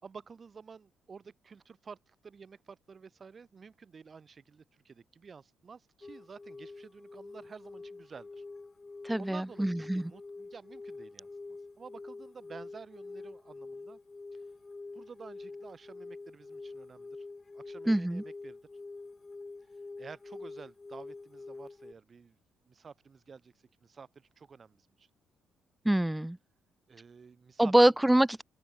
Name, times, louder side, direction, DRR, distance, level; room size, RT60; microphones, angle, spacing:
voice 1, 0.0-8.4 9.2-14.0 14.9-17.2 17.5-18.6 20.0-22.4 22.6-23.5 23.8-25.1 26.9-27.9, right 5 dB, 30° right, 3.0 m, -51 dB
sound 1, 6.0-21.9, left 3 dB, 20° left, 4.3 m, -46 dB
voice 2, 9.0-10.1 17.9-18.2 25.8-26.4 27.6-28.4, right 1 dB, 5° right, 0.4 m, -25 dB
open air
cardioid pair, 140°, 0 cm